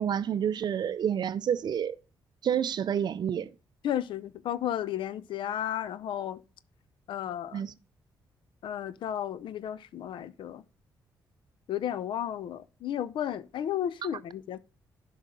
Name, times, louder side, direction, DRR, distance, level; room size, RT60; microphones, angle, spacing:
voice 1, 0.0-2.0 2.4-3.5 7.5-7.7, right 8 dB, 60° right, 0.5 m, -29 dB
voice 2, 3.8-6.4 7.1-7.6 8.6-10.6 11.7-14.6, left 10 dB, 75° left, 0.5 m, -33 dB
10.5 x 5.5 x 3.7 m
cardioid pair, 80°, 8 cm